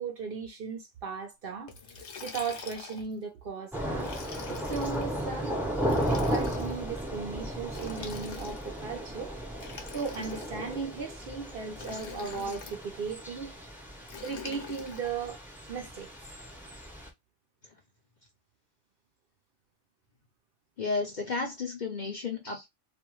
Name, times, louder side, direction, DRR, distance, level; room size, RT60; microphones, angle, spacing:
voice 1, 0.0-1.7 2.2-4.1 4.5-9.3 9.9-13.5 14.2-15.4 15.7-16.1, right 5 dB, 60° right, 0.7 m, -37 dB
Liquid, 1.7-3.1 4.0-5.0 5.8-6.8 7.7-8.8 9.5-10.7 11.7-12.8 14.1-15.1, left 6 dB, 70° left, 1.0 m, -44 dB
Thunder / Rain, 3.7-17.1, right 1 dB, ahead, 0.5 m, -35 dB
voice 2, 20.8-22.7, left 4 dB, 50° left, 0.6 m, -33 dB
2.5 x 2.2 x 3.0 m
omnidirectional pair, 1.3 m